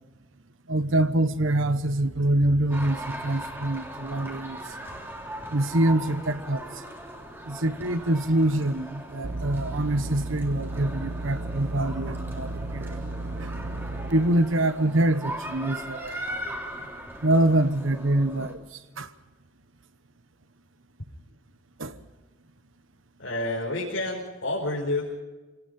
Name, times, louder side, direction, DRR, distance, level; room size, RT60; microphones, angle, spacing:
voice 1, 0.7-4.6 5.5-6.6 7.5-13.0 13.4-13.8 14.1-16.4 17.2-18.6 19.0-19.1 21.8-22.0, right 1 dB, 75° right, 11 dB, 1.2 m, -25 dB
sound 1, 2.7-18.5, right 1 dB, 10° right, 3.2 m, -39 dB
sound 2, 9.2-14.1, right 2 dB, 55° right, 0.9 m, -34 dB
voice 2, 23.2-25.2, left 2 dB, 75° left, -4 dB, 5.2 m, -29 dB
27.0 x 18.5 x 5.5 m, 1.2 s
head